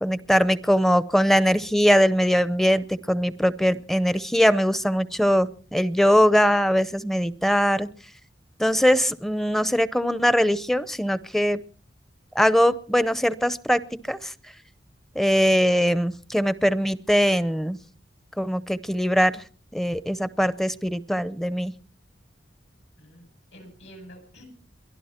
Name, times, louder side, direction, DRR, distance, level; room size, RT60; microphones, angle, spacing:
voice 1, 0.0-7.9 8.6-11.6 12.3-13.8 14.1-14.3 15.2-17.8 18.4-19.4 19.7-21.7, equal, ahead, 16 dB, 0.6 m, -21 dB
voice 2, 23.0-24.5, equal, 80° left, 4 dB, 7.6 m, -48 dB
23.0 x 12.0 x 4.4 m, 0.43 s
head